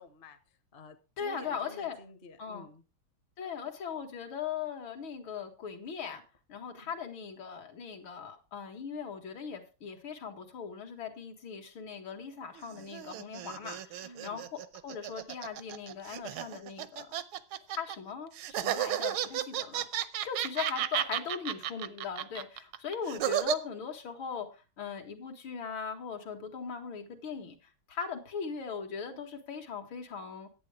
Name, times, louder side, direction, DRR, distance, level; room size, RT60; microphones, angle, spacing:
voice 1, 0.0-2.8 6.8-6.9 14.0-14.5, left 2 dB, 35° left, 1.0 m, -51 dB
voice 2, 1.2-2.0 2.4-2.7 3.4-6.2 6.5-17.1 17.8-19.8 20.2-30.5, left 6 dB, 70° left, 2.5 m, -39 dB
sound 1, 12.6-18.0 18.4-23.6, right 12 dB, 85° right, 1.6 m, -33 dB
11.0 x 8.5 x 4.8 m
omnidirectional pair, 2.3 m